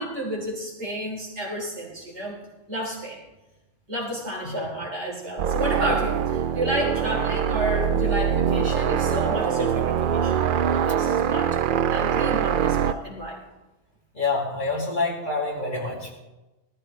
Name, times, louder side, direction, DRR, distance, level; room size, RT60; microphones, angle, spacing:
voice 1, 0.0-2.4 2.7-3.2 3.9-11.6 11.9-13.4, right 1 dB, 80° right, -3 dB, 4.1 m, -31 dB
sound 1, 5.4-12.9, right 8 dB, 55° right, 0.6 m, -23 dB
voice 2, 14.1-16.2, left 3 dB, 45° left, -4 dB, 3.0 m, -27 dB
19.5 x 14.0 x 3.3 m, 1.1 s
omnidirectional pair, 1.2 m